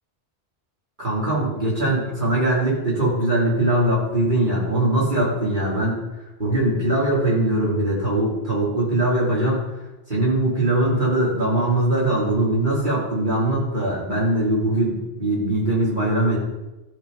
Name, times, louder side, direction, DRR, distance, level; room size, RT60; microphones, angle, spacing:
voice 1, 1.0-6.0 6.4-9.6 10.1-16.4, right 1 dB, 50° right, -6 dB, 3.6 m, -21 dB
13.5 x 5.3 x 5.3 m, 1.0 s
omnidirectional pair, 1.1 m